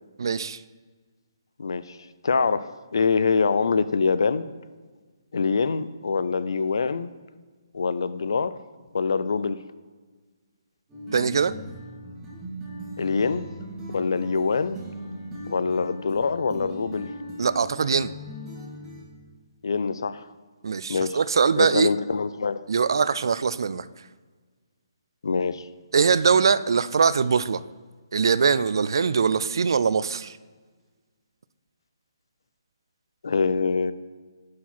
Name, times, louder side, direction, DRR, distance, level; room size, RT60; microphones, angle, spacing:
voice 1, 0.2-0.6 11.1-11.5 17.4-18.1 20.6-21.9 22.7-23.9 25.9-27.6 28.1-30.4, right 6 dB, 65° right, 17 dB, 0.4 m, -22 dB
voice 2, 1.6-2.0 2.2-4.4 5.3-7.1 7.7-8.6 8.9-9.6 13.0-13.5 13.9-14.8 15.5-17.1 19.6-20.3 20.9-21.2 21.6-22.6 25.2-25.7 33.2-33.9, left 5 dB, 70° left, 14 dB, 0.5 m, -24 dB
sound 1, 10.9-19.0, equal, 15° right, 2.0 m, -39 dB
11.0 x 4.8 x 4.3 m, 1.4 s
hypercardioid pair, 150°, 2 cm